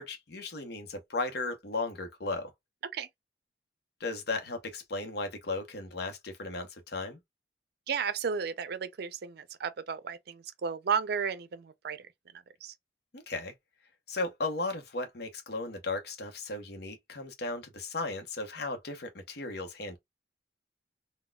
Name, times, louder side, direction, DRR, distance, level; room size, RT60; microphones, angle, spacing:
voice 1, 0.0-2.5 4.0-7.2 13.1-13.5 14.1-20.0, left 3 dB, 65° left, 0.8 m, -36 dB
voice 2, 7.9-12.1 12.6-12.7, right 6 dB, 65° right, 0.4 m, -33 dB
4.0 x 2.2 x 2.2 m
head